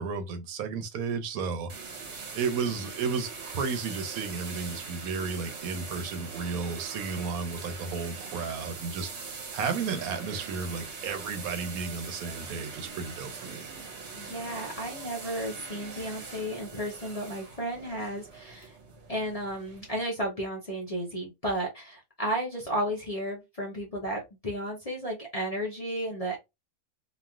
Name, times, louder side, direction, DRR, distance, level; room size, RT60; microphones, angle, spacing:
voice 1, 0.0-1.9 2.3-9.1 9.5-13.7, right 5 dB, 80° right, 1.0 m, -33 dB
sound 1, 1.7-20.0, right 5 dB, 55° right, 0.9 m, -42 dB
voice 2, 14.1-18.7 19.1-26.4, right 1 dB, 35° left, 0.6 m, -33 dB
3.1 x 2.4 x 2.2 m
omnidirectional pair, 1.5 m